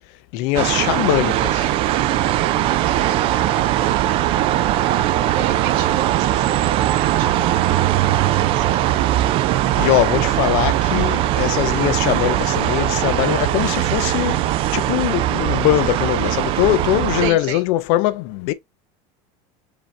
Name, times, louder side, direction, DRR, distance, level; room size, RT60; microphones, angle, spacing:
voice 1, 0.3-1.7 9.8-18.5, left 15 dB, 60° left, 0.6 m, -21 dB
sound 1, 0.5-17.3, right 13 dB, 40° right, 0.3 m, -20 dB
voice 2, 3.4-4.6 5.3-9.3 9.7-10.1 17.2-17.6, right 10 dB, 65° right, 1.4 m, -34 dB
4.9 x 2.7 x 3.2 m
cardioid pair, 165°, 15 cm